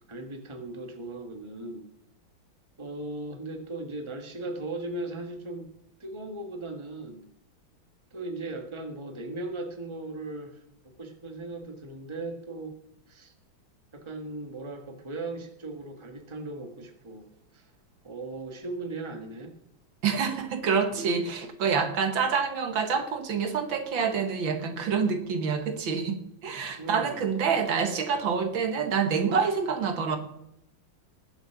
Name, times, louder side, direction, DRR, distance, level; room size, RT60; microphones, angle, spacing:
voice 1, 0.1-1.8 2.8-5.7 6.0-7.2 8.1-10.6 11.0-12.7 13.1-13.3 13.9-17.7 18.0-19.5 26.8-27.3, right 2 dB, 15° right, 4 dB, 1.5 m, -38 dB
voice 2, 20.0-30.2, right 6 dB, 75° right, 7 dB, 2.1 m, -27 dB
19.5 x 7.8 x 5.9 m, 0.79 s
omnidirectional pair, 2.2 m